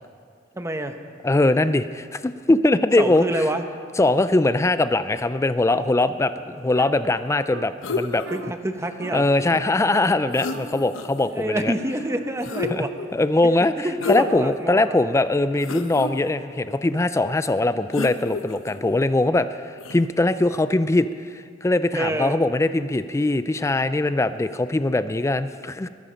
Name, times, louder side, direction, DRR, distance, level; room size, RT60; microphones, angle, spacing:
voice 1, 0.5-1.0 3.0-3.6 8.3-9.3 11.2-12.9 13.8-15.0 21.9-22.4, right 1 dB, 15° right, 7 dB, 0.9 m, -27 dB
voice 2, 1.2-3.2 4.0-8.2 9.1-11.7 12.7-12.8 13.1-25.9, left 2 dB, 15° left, 12 dB, 0.4 m, -21 dB
sound 1, 6.7-6.9 7.5-7.7 8.2-8.5 9.0-9.2 9.5-10.0 10.5-12.7 14.0-14.5, right 4 dB, 60° right, 0.6 m, -41 dB
sound 2, 7.8-8.4 10.0-10.1 10.3-11.3 12.4-13.1 14.0-14.5 15.0-15.1 15.6-16.1 17.9-18.8 19.8-20.0, left 4 dB, 80° left, 0.8 m, -29 dB
21.0 x 11.0 x 5.2 m, 2.1 s
head